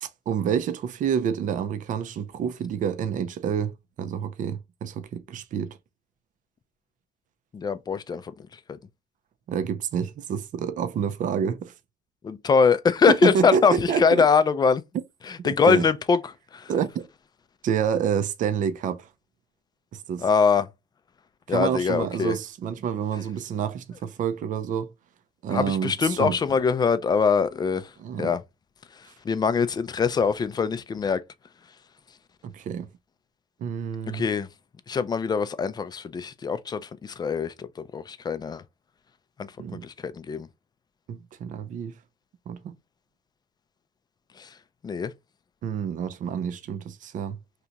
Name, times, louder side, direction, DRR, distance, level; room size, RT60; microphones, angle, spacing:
voice 1, 0.0-5.8 9.5-11.7 13.1-14.2 15.4-15.9 16.7-17.1 17.6-19.1 19.9-20.2 21.5-24.9 25.4-26.4 28.0-28.3 32.4-32.9 33.6-34.3 39.6-39.8 41.1-42.0 42.5-42.7 45.6-47.4, right 7 dB, 50° right, 0.5 m, -28 dB
voice 2, 7.5-8.8 12.2-14.8 15.3-16.7 20.2-20.7 21.5-22.4 25.5-27.9 28.2-28.4 29.0-31.2 34.1-34.5 34.9-38.6 39.4-40.5 44.4-44.5 44.8-45.1, left 5 dB, 25° left, 0.3 m, -23 dB
2.8 x 2.3 x 3.8 m
cardioid pair, 110°, 17 cm